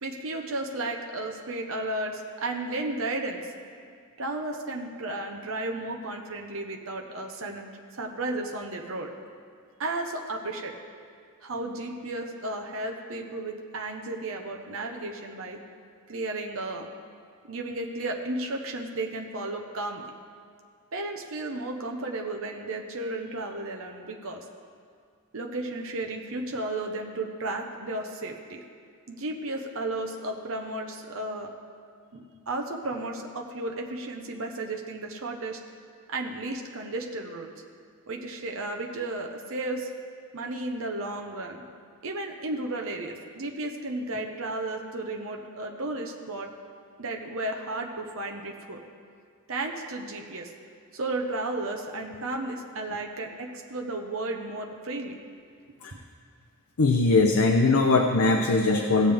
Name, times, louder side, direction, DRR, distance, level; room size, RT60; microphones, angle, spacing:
voice 1, 0.0-3.4 4.2-9.1 9.8-10.7 11.4-15.6 16.1-16.9 17.4-20.0 20.9-24.4 25.3-28.6 29.1-31.5 32.1-35.6 36.1-37.5 38.1-39.9 40.3-41.6 42.0-46.5 47.0-48.8 49.5-50.5 50.9-55.2, right 2 dB, 65° right, 2 dB, 0.9 m, -33 dB
voice 2, 56.8-59.1, left 3 dB, 75° left, 3 dB, 0.6 m, -21 dB
17.0 x 7.4 x 3.5 m, 2.2 s
head